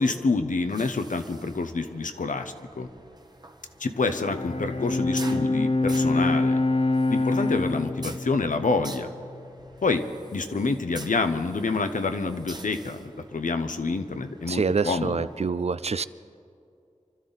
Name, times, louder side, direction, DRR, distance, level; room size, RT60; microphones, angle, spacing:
voice 1, 0.0-2.9 3.8-6.6 7.1-9.1 9.8-10.1 10.3-15.3, left 3 dB, 85° left, 0.8 m, -27 dB
sound 1, 0.6-15.5, right 2 dB, 30° right, 1.1 m, -47 dB
Bowed string instrument, 3.9-9.4, left 2 dB, 55° left, 0.7 m, -26 dB
voice 2, 14.5-16.1, right 5 dB, 55° right, 0.4 m, -26 dB
25.0 x 12.5 x 4.0 m
wide cardioid pair, 45°, 13 cm